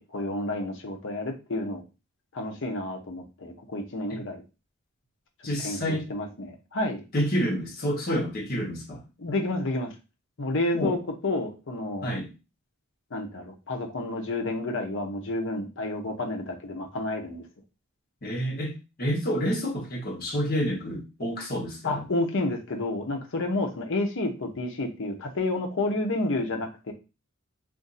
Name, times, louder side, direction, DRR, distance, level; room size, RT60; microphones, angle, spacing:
voice 1, 0.0-1.8 2.3-4.4 5.6-7.0 9.2-9.9 10.4-12.1 13.1-17.4 21.8-26.9, left 2 dB, 60° left, 3 dB, 0.8 m, -30 dB
voice 2, 5.4-6.1 7.1-9.0 10.7-11.0 12.0-12.3 18.2-22.1, equal, 45° left, 0 dB, 1.1 m, -29 dB
2.6 x 2.5 x 3.9 m, 0.29 s
head